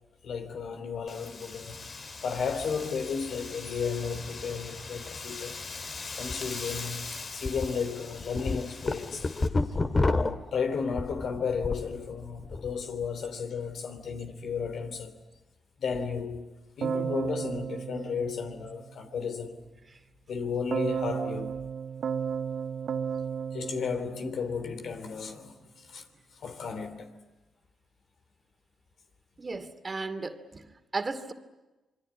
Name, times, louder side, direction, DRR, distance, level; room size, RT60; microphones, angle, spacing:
voice 1, 0.2-1.9 2.2-5.6 6.1-9.3 10.5-15.2 15.8-16.5 16.8-19.7 20.3-21.7 23.5-26.1 26.3-27.2, left 5 dB, 65° left, 3.2 m, -34 dB
Wind, 1.1-9.5, left 4 dB, 50° left, 3.0 m, -41 dB
sound 1, 6.2-6.3 6.8-6.9 7.4-7.7 8.1-11.9 12.3-12.7, left 3 dB, 35° left, 2.0 m, -28 dB
Keyboard (musical), 16.8-19.1 20.7-25.0, right 7 dB, 65° right, 1.0 m, -34 dB
voice 2, 29.4-31.3, right 3 dB, 40° right, 2.5 m, -35 dB
27.0 x 23.0 x 9.6 m
supercardioid pair, 50°, 0 cm